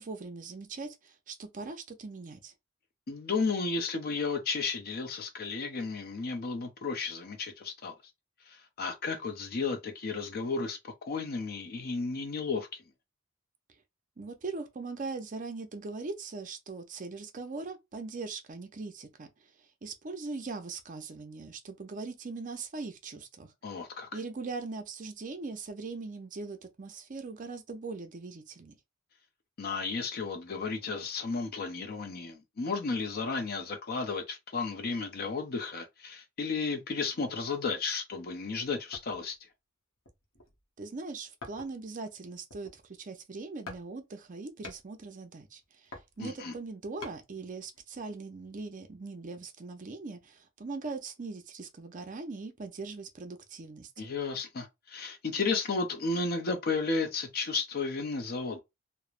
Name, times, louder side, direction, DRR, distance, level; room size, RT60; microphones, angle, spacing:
voice 1, 0.0-2.5 14.2-19.3 19.8-23.5 24.1-28.7 40.8-45.6 46.2-53.9, right 3 dB, 40° right, 0.5 m, -40 dB
voice 2, 3.1-7.9 8.5-12.8 23.6-24.1 29.6-39.4 46.2-46.5 54.0-58.6, left 4 dB, 50° left, 0.5 m, -33 dB
sound 1, 38.9-39.4 40.0-40.6 41.4-41.9 42.3-43.0 43.7-43.9 44.2-44.9 45.6-47.2 47.7-47.8, left 3 dB, 90° left, 0.9 m, -47 dB
3.1 x 2.1 x 2.4 m
head